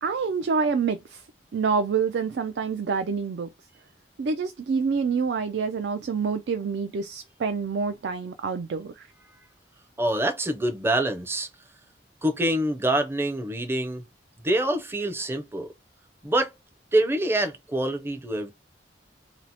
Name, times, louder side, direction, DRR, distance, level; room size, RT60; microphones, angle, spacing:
voice 1, 0.0-1.2 1.5-3.5 4.2-9.1, right 5 dB, 65° right, 0.4 m, -27 dB
voice 2, 10.0-11.5 12.2-14.0 14.4-15.7 16.2-16.5 16.9-18.5, right 1 dB, 15° right, 0.5 m, -25 dB
2.8 x 2.0 x 4.0 m
head